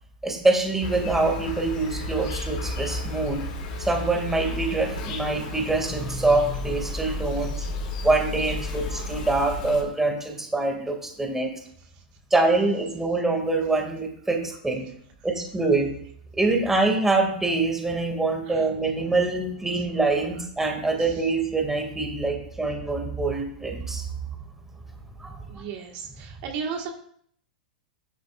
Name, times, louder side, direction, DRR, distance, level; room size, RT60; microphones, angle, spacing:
voice 1, 0.2-3.4 3.8-7.7 8.0-11.5 12.3-14.9 15.2-15.9 16.3-24.1 25.2-25.4, right 3 dB, 5° right, 2 dB, 2.3 m, -25 dB
Insect, 0.8-9.8, left 2 dB, 55° left, 2.8 m, -32 dB
voice 2, 25.5-26.9, right 6 dB, 50° right, 1 dB, 1.7 m, -34 dB
11.0 x 9.3 x 2.5 m, 0.63 s
hypercardioid pair, 110°, 5 cm